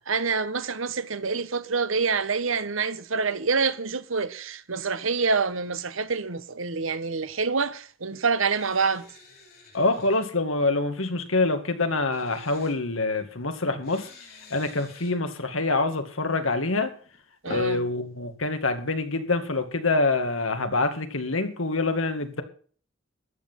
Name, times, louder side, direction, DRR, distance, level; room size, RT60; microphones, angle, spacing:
voice 1, 0.0-9.1 17.4-17.8, right 4 dB, 80° right, 1.1 m, -27 dB
sound 1, 8.5-10.2 12.1-12.8 13.8-15.1 16.8-17.8, left 2 dB, 45° left, 5.5 m, -46 dB
voice 2, 9.7-14.1 14.5-16.9 17.5-22.4, left 3 dB, 80° left, 2.2 m, -26 dB
14.0 x 9.6 x 5.8 m
head